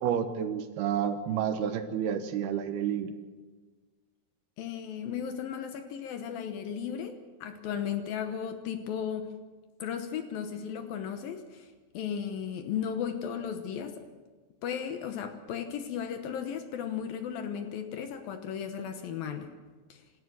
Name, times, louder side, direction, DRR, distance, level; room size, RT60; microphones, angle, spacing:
voice 1, 0.0-3.1, right 8 dB, 75° right, 8 dB, 2.9 m, -30 dB
voice 2, 4.6-9.3 9.8-11.7 11.9-14.0 14.6-19.5 19.9-20.0, left 8 dB, 70° left, 7 dB, 2.5 m, -35 dB
27.0 x 13.0 x 7.7 m, 1.4 s
omnidirectional pair, 4.9 m